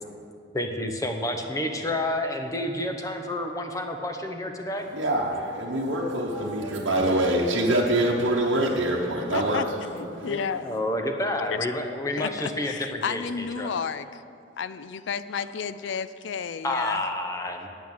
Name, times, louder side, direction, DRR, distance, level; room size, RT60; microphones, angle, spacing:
voice 1, 0.5-4.9 9.9-13.7 16.6-17.7, left 1 dB, 15° left, 4 dB, 0.8 m, -30 dB
voice 2, 4.8-9.7 10.1-10.3, right 1 dB, 70° right, -4 dB, 1.0 m, -25 dB
voice 3, 9.3-9.6 10.0-10.7 11.5-11.6 12.2-14.2 14.6-17.0, left 6 dB, 75° left, 14 dB, 0.4 m, -32 dB
9.2 x 8.6 x 7.2 m, 2.5 s
head